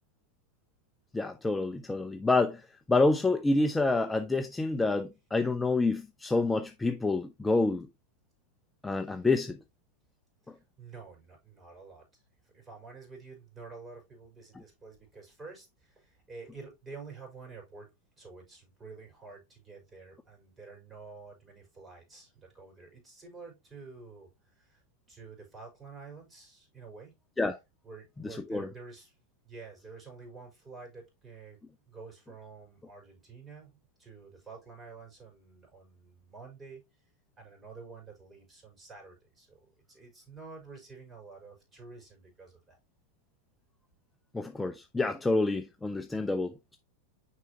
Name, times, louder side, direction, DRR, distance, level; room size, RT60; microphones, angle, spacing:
voice 1, 1.1-2.6 2.9-7.9 8.8-9.6 27.4-27.6 28.5-28.7 44.3-46.8, left 3 dB, 10° left, 0.5 m, -28 dB
voice 2, 10.4-12.1 12.4-17.9 18.2-24.8 25.1-27.1 27.8-29.2 29.4-31.6 31.9-36.8 37.4-39.6 39.9-42.8, right 4 dB, 20° right, 4.5 m, -49 dB
6.7 x 4.9 x 2.9 m
hypercardioid pair, 95°, 0 cm